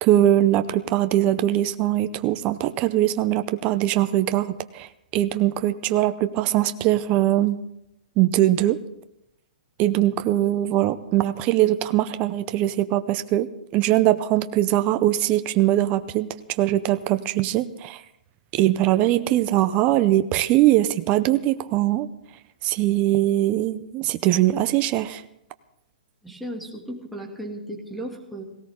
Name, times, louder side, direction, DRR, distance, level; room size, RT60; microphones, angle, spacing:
voice 1, 0.0-4.9 5.1-7.6 8.2-8.8 9.8-18.0 18.5-22.1 22.6-25.2, right 14 dB, 30° right, 11 dB, 0.7 m, -21 dB
voice 2, 26.2-28.4, right 1 dB, ahead, -2 dB, 2.5 m, -35 dB
18.0 x 17.0 x 3.7 m, 0.83 s
hypercardioid pair, 140°, 5 cm